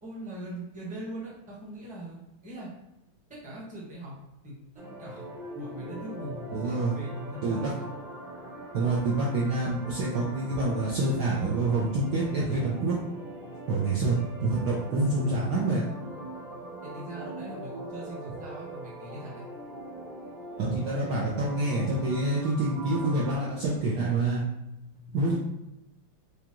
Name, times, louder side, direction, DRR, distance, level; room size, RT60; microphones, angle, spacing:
voice 1, 0.0-2.7 3.3-4.1 4.4-4.5 5.0-7.9 16.8-19.5 24.9-25.3, right 1 dB, 5° right, -7 dB, 0.7 m, -41 dB
sound 1, 4.8-23.4, right 1 dB, 50° right, 1.7 m, -42 dB
voice 2, 6.5-7.0 7.4-7.7 8.7-13.0 13.7-15.8 20.6-24.4 25.1-25.4, right 2 dB, 70° right, -5 dB, 1.0 m, -27 dB
5.0 x 2.3 x 2.9 m, 0.88 s
omnidirectional pair, 2.3 m